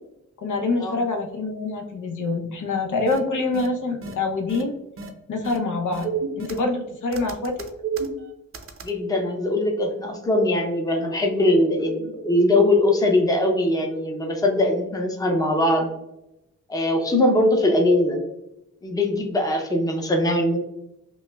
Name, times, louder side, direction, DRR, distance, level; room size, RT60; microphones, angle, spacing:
voice 1, 0.4-4.7 5.3-7.7, left 3 dB, 70° left, 2 dB, 0.7 m, -26 dB
sound 1, 3.1-3.2 3.5-3.7 4.0-4.1 4.5-4.6 5.0-5.1 5.4-5.6 5.9-6.8 7.1-8.9, right 6 dB, 45° right, 0.5 m, -31 dB
voice 2, 8.8-15.9 16.7-18.2 18.8-20.6, left 1 dB, 10° left, 2 dB, 0.6 m, -21 dB
5.1 x 2.1 x 2.2 m, 0.88 s
wide cardioid pair, 120°, 31 cm